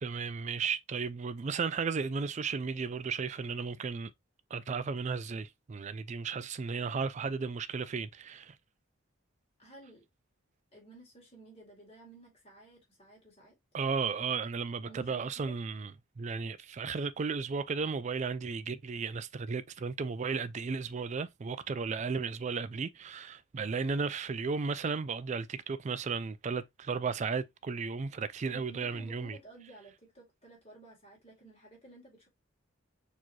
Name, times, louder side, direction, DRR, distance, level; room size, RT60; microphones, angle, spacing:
voice 1, 0.0-4.1 4.5-8.6 13.7-29.4, right 5 dB, 35° right, 0.3 m, -34 dB
voice 2, 9.6-10.1 10.7-13.6 14.8-15.6 28.5-32.3, right 2 dB, 30° left, 2.1 m, -54 dB
4.4 x 3.0 x 2.9 m
head